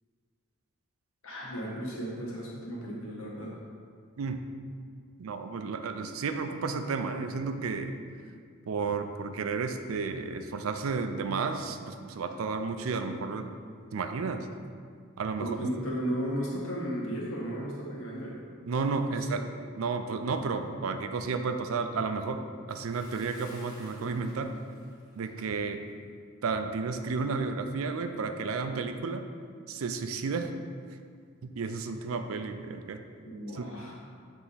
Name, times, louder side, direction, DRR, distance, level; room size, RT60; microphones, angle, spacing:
voice 1, 1.2-3.5 15.4-18.4 19.1-19.4 33.2-34.0, equal, 80° left, -4 dB, 1.4 m, -35 dB
voice 2, 4.2-4.5 5.2-8.0 8.7-13.5 13.9-14.5 15.2-15.5 18.7-19.4 19.8-22.4 22.7-24.5 25.2-25.8 26.4-29.3 29.7-30.5 31.4-33.0 33.5-33.7, right 4 dB, 85° right, 7 dB, 0.4 m, -32 dB
Bathtub (filling or washing) / Splash splatter, 22.7-25.6 25.9-26.1 26.6-26.7, left 1 dB, 20° left, 1.1 m, -55 dB
7.7 x 3.5 x 4.1 m, 2.1 s
head